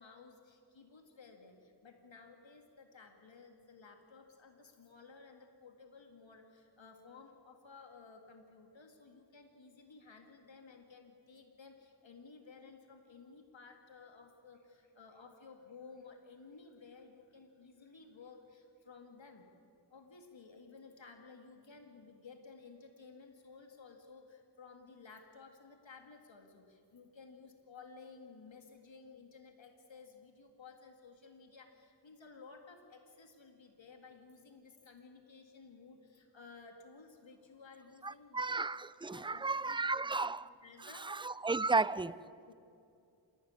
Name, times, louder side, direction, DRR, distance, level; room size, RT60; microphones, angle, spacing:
voice 1, 0.0-19.5 19.9-38.7 39.0-41.1 41.7-41.9 42.2-42.5, left 4 dB, 80° left, 2.1 m, -56 dB
voice 2, 38.0-40.5 40.8-42.1, right 3 dB, 10° right, 0.4 m, -34 dB
28.0 x 13.0 x 9.7 m
wide cardioid pair, 65°, 45 cm